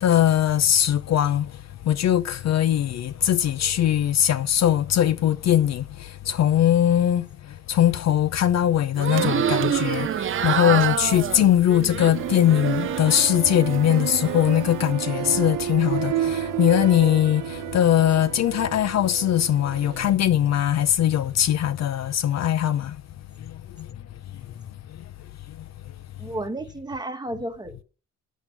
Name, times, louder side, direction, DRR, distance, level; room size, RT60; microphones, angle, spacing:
voice 1, 0.0-1.6 1.8-23.0 23.4-23.9 25.5-25.6, left 11 dB, 60° left, 0.7 m, -21 dB
sound 1, 9.0-13.4 13.7-14.5, right 9 dB, 45° right, 0.7 m, -27 dB
sound 2, 12.1-20.2, right 11 dB, 85° right, 0.9 m, -30 dB
voice 2, 26.2-27.8, right 1 dB, 15° right, 1.5 m, -32 dB
9.4 x 7.7 x 5.8 m
cardioid pair, 90°, 30 cm